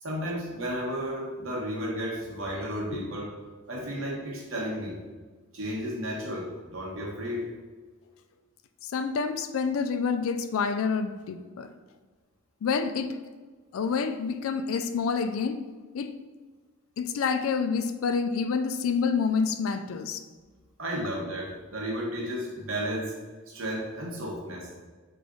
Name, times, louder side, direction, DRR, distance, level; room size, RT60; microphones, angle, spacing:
voice 1, 0.0-3.3 3.7-5.0 5.5-7.5 20.8-23.1 23.5-24.7, equal, 65° right, -3 dB, 1.1 m, -33 dB
voice 2, 8.9-11.7 12.6-13.1 13.7-15.6 15.9-16.1 17.0-20.2, left 5 dB, 70° left, 9 dB, 0.3 m, -28 dB
5.0 x 2.5 x 3.6 m, 1.4 s
head